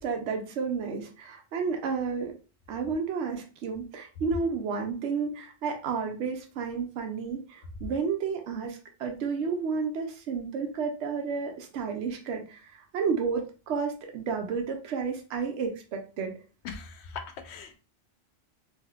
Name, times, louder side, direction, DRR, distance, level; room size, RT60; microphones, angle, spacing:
voice 1, 0.0-2.3 2.7-16.3, right 5 dB, 80° right, 3 dB, 0.9 m, -31 dB
voice 2, 16.6-17.8, left 5 dB, 75° left, 8 dB, 0.8 m, -40 dB
3.5 x 2.6 x 2.2 m, 0.34 s
omnidirectional pair, 1.2 m